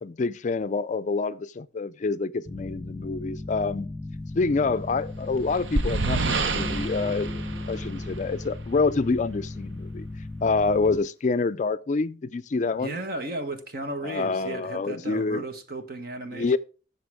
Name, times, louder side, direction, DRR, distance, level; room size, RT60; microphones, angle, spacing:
voice 1, 0.0-3.9 4.3-7.4 7.7-10.1 10.4-13.0 14.0-15.4 16.3-16.6, left 4 dB, 40° left, 0.4 m, -27 dB
sound 1, 2.4-11.0, left 2 dB, 15° left, 1.0 m, -36 dB
sound 2, 4.9-8.6, right 3 dB, 85° right, 0.8 m, -29 dB
voice 2, 12.7-16.6, right 2 dB, 55° right, 1.5 m, -35 dB
14.0 x 6.9 x 3.6 m
head